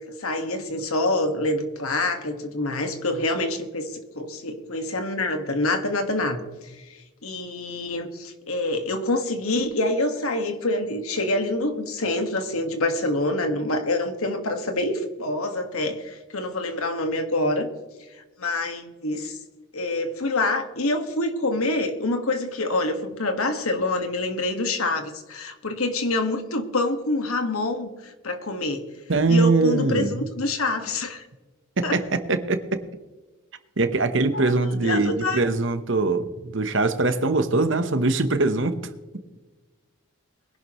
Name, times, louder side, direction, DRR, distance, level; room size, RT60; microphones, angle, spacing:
voice 1, 0.2-17.7 18.4-19.4 19.7-28.9 29.3-31.2 31.8-32.0 34.3-34.5 34.8-35.4, left 2 dB, 85° left, 6 dB, 1.7 m, -26 dB
voice 2, 29.1-30.3 31.9-32.0 32.3-32.8 33.8-38.8, right 3 dB, 60° right, 9 dB, 1.1 m, -22 dB
22.0 x 11.0 x 3.1 m, 1.2 s
head